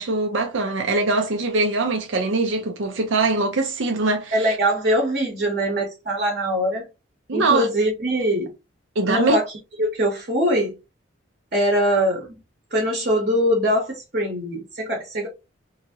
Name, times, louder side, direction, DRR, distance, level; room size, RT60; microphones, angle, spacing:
voice 1, 0.0-4.6 7.3-7.7 9.0-9.4, right 3 dB, 75° right, 0.6 m, -22 dB
voice 2, 4.3-6.9 7.3-8.5 9.0-9.4 9.8-10.8 11.5-12.4 12.7-15.3, equal, 45° right, 1.0 m, -22 dB
2.8 x 2.6 x 2.8 m
head